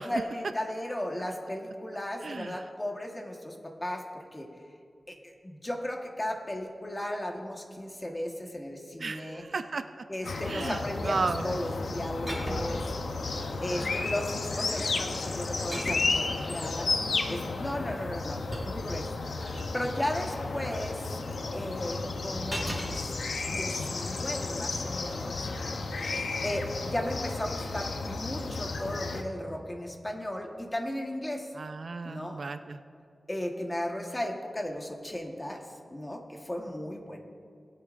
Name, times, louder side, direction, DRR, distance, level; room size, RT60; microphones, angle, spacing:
voice 1, 0.0-4.5 5.1-9.4 10.1-12.9 13.6-16.9 17.3-19.2 19.4-21.1 21.5-23.0 23.4-25.5 26.4-31.5 32.0-32.4 33.3-35.6 35.9-37.2, left 1 dB, 20° left, 2 dB, 1.3 m, -35 dB
voice 2, 2.2-2.6 9.0-9.8 10.5-11.4 31.6-32.8, right 4 dB, 65° right, 9 dB, 0.4 m, -34 dB
sound 1, 10.2-29.2, left 3 dB, 90° left, 0.7 m, -33 dB
sound 2, 12.3-12.9 13.8-14.3 15.7-16.3 18.0-19.7 22.5-23.0 24.9-25.2, equal, 5° right, 2.5 m, -37 dB
20.0 x 8.3 x 2.5 m, 2.5 s
wide cardioid pair, 95°, 0 cm